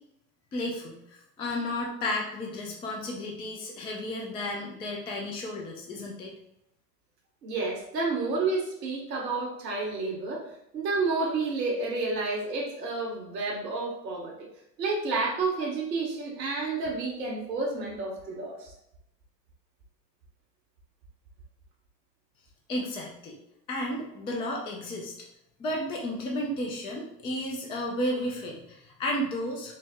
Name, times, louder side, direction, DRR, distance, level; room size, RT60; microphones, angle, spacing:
voice 1, 0.5-6.3 22.7-23.4 23.7-25.1 25.6-29.7, left 1 dB, 10° left, -1 dB, 0.3 m, -33 dB
voice 2, 7.4-10.4 10.7-14.5 14.8-18.7, right 3 dB, 80° right, -2 dB, 1.2 m, -30 dB
4.6 x 2.0 x 3.5 m, 0.80 s
hypercardioid pair, 90°, 49 cm